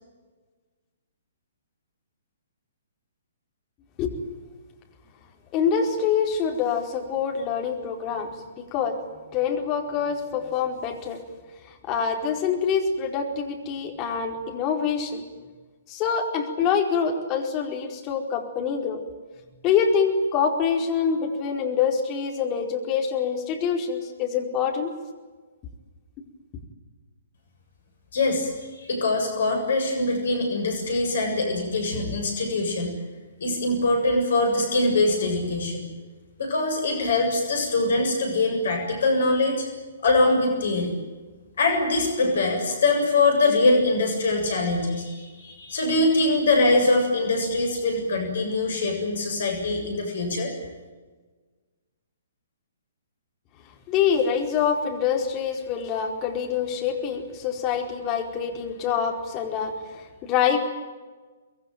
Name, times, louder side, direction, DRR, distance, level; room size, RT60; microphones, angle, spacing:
voice 1, 5.5-8.3 8.6-9.0 9.3-11.2 11.7-15.2 15.9-19.0 19.6-24.9 53.9-60.6, left 6 dB, 25° left, 2 dB, 4.7 m, -25 dB
voice 2, 28.1-28.5 28.8-32.9 33.4-35.8 36.4-39.6 40.0-40.9 41.6-50.5, left 2 dB, 55° left, 3 dB, 7.5 m, -23 dB
24.5 x 22.0 x 9.3 m, 1.3 s
figure-of-eight pair, 125°, 0 cm